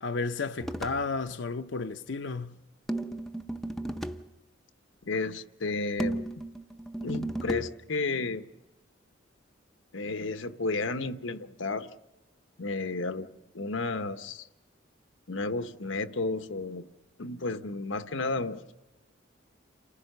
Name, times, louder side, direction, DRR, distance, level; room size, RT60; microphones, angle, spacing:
voice 1, 0.0-2.6, left 4 dB, 70° left, 0.7 m, -32 dB
sound 1, 0.6-1.1 2.9-4.3 6.0-7.7, right 1 dB, ahead, 0.7 m, -34 dB
voice 2, 5.0-6.2 7.0-8.4 9.9-11.9 12.6-13.3 13.5-14.5 15.3-16.8 17.2-18.6, left 3 dB, 90° left, 1.1 m, -32 dB
28.5 x 15.0 x 6.7 m
head